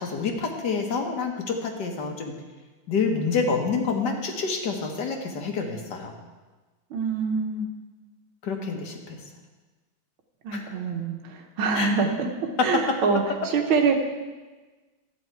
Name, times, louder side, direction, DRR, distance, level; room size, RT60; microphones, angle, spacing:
voice 1, 0.0-2.3 2.9-6.1 8.4-9.2 10.5-10.8 11.7-11.9, left 5 dB, 60° left, 3 dB, 1.7 m, -28 dB
voice 2, 6.9-7.7 10.4-12.1 12.6-13.2 13.5-14.0, right 5 dB, 85° right, 4 dB, 1.9 m, -25 dB
13.0 x 8.8 x 4.6 m, 1.3 s
omnidirectional pair, 2.2 m